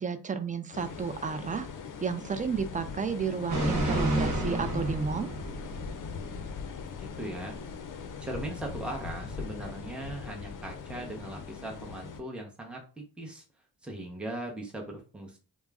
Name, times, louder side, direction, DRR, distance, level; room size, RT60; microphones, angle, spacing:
voice 1, 0.0-1.7 2.0-5.3, right 5 dB, 20° right, 9 dB, 0.3 m, -32 dB
sound 1, 0.7-12.2, left 5 dB, 55° left, 0.5 m, -40 dB
sound 2, 3.5-6.4 6.7-6.8, right 1 dB, 45° right, 1.1 m, -30 dB
voice 2, 7.0-7.6 8.2-13.4 13.8-15.4, right 1 dB, 5° right, 0 dB, 0.8 m, -39 dB
2.3 x 2.0 x 3.4 m, 0.37 s
cardioid pair, 50°, 39 cm